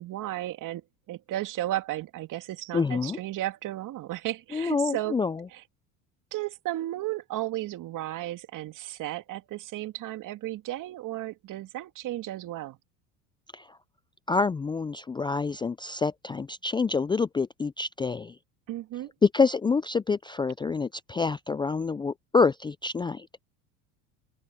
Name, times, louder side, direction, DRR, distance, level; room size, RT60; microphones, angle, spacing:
voice 1, 0.0-5.2 5.5-5.6 6.3-12.8 18.7-19.1, right 15 dB, 50° right, 2.4 m, -34 dB
voice 2, 2.7-3.2 4.5-5.4 13.5-13.8 14.3-18.4 19.2-23.3, left 4 dB, 10° left, 0.4 m, -27 dB
open air
hypercardioid pair, 85°, 40 cm